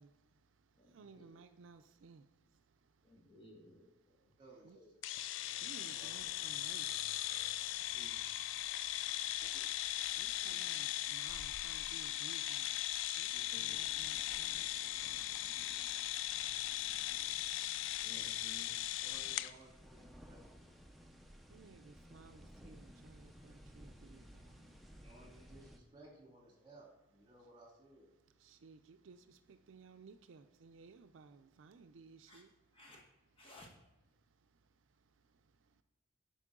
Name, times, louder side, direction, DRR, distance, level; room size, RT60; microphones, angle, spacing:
voice 1, 0.0-3.3 4.1-4.4 4.6-4.8 5.1-8.1 8.5-9.0 9.9-18.1 20.8-25.1 28.2-32.9 34.1-35.8, right 4 dB, 70° right, 0.4 m, -61 dB
voice 2, 0.8-1.3 3.0-3.9 4.2-4.3 4.7-4.9 7.9-8.2 9.5-9.6 10.4-10.6 13.3-13.8 18.0-18.7 32.3-32.4 32.7-33.0 33.4-33.7, left 1 dB, 30° left, 1.3 m, -58 dB
voice 3, 4.4-4.8 5.8-6.1 19.0-19.7 20.3-20.4 25.0-28.1, right 2 dB, 25° right, 2.1 m, -59 dB
sound 1, 5.0-19.5, left 13 dB, 65° left, 0.3 m, -39 dB
sound 2, 6.0-25.8, equal, ahead, 0.5 m, -60 dB
8.3 x 5.4 x 3.7 m
head